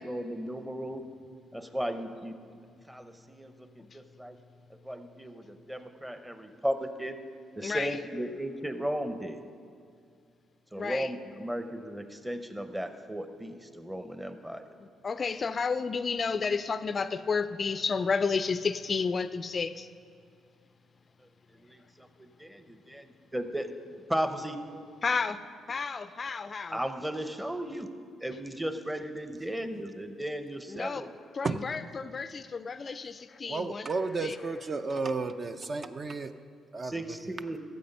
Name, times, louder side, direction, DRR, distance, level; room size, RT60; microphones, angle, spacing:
voice 1, 0.0-1.0 1.5-2.5 2.9-4.4 4.8-7.2 7.6-9.4 10.7-14.7 21.6-23.7 24.1-25.0 26.7-27.9 28.2-31.1 36.8-37.6, equal, 10° right, 8 dB, 0.8 m, -35 dB
voice 2, 7.6-8.0 10.8-11.1 14.8-19.9 25.0-26.8 30.7-31.1 31.3-33.9 34.2-34.4, left 5 dB, 40° left, 13 dB, 0.4 m, -31 dB
voice 3, 33.5-36.3 36.7-36.9, right 3 dB, 40° right, 8 dB, 0.5 m, -32 dB
13.0 x 7.6 x 5.4 m, 2.3 s
cardioid pair, 90°, 0 cm